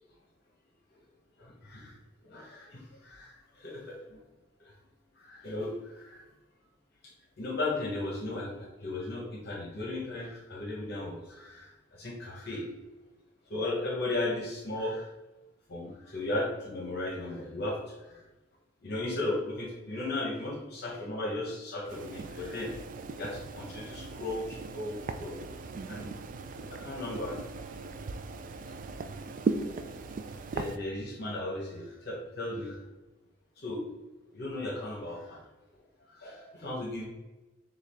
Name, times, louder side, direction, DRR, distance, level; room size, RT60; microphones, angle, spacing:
voice 1, 1.4-1.9 2.2-4.2 5.2-6.2 7.4-12.7 13.5-15.1 15.7-17.8 18.1-18.2 18.8-22.7 23.2-25.4 25.9-26.1 26.6-27.4 30.5-32.8 33.6-33.8 34.3-35.4 36.1-37.0, left 2 dB, 55° left, -1 dB, 0.8 m, -36 dB
sound 1, 21.9-30.8, right 3 dB, 45° right, 0.3 m, -38 dB
6.4 x 2.3 x 3.3 m, 1.1 s
head